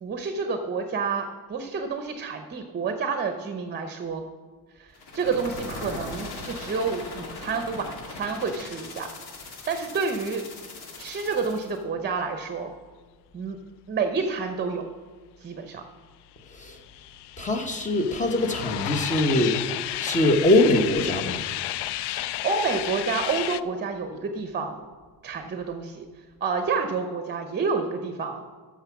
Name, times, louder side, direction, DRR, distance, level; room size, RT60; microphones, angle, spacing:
voice 1, 0.0-4.2 4.7-9.1 9.4-10.4 11.0-12.7 13.3-13.6 13.9-14.9 15.4-15.8 22.1-24.8 25.2-26.0 26.4-28.4, right 4 dB, 25° right, 6 dB, 0.7 m, -29 dB
sound 1, 4.9-11.8, left 2 dB, 70° left, 2.2 m, -39 dB
sound 2, 16.5-23.6, left 14 dB, 90° left, 0.5 m, -32 dB
voice 2, 17.4-19.6 20.0-21.4, left 1 dB, 20° left, 6 dB, 0.9 m, -22 dB
13.0 x 6.1 x 5.8 m, 1.5 s
cardioid pair, 165°, 39 cm